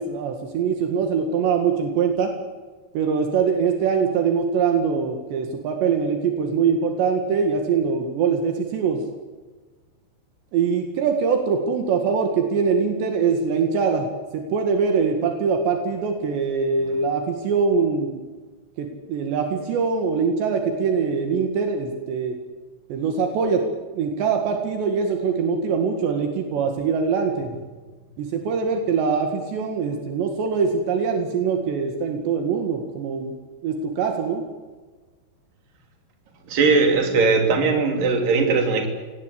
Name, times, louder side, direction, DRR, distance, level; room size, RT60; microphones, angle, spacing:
voice 1, 0.0-2.3 2.9-9.1 10.5-18.2 18.8-22.4 22.9-23.7 23.9-27.5 28.2-33.3 33.6-34.4, right 5 dB, 75° right, 4 dB, 4.1 m, -23 dB
voice 2, 36.5-38.9, right 4 dB, 50° right, 3 dB, 4.6 m, -19 dB
25.0 x 18.5 x 8.4 m, 1.3 s
omnidirectional pair, 5.1 m